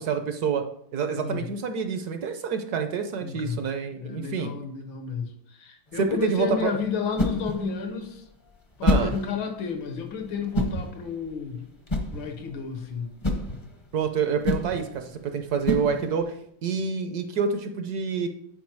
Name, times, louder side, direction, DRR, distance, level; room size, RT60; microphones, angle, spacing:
voice 1, 0.1-0.6 0.9-4.5 6.0-6.7 8.8-9.1 13.9-16.3 16.6-18.3, right 6 dB, 65° right, 7 dB, 1.1 m, -27 dB
voice 2, 1.2-1.5 3.2-3.6 3.9-8.3 8.8-11.6 12.1-13.1, left 6 dB, 75° left, 5 dB, 1.9 m, -32 dB
sound 1, 5.9-16.4, left 1 dB, 25° left, 0.6 m, -30 dB
9.5 x 4.7 x 4.6 m, 0.70 s
omnidirectional pair, 2.2 m